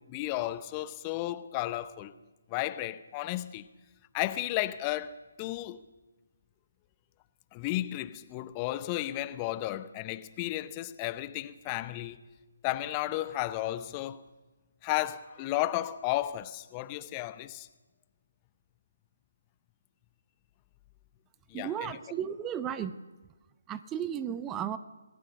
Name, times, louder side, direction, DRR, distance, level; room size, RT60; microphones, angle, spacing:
voice 1, 0.0-2.1 2.5-3.7 4.1-5.1 5.4-5.8 7.5-12.2 12.6-14.2 14.8-17.7 21.5-21.7, left 15 dB, 20° left, 0.8 m, -33 dB
voice 2, 21.5-22.9 23.7-24.8, right 9 dB, 15° right, 0.8 m, -34 dB
27.0 x 19.0 x 6.6 m
figure-of-eight pair, 145°, 0 cm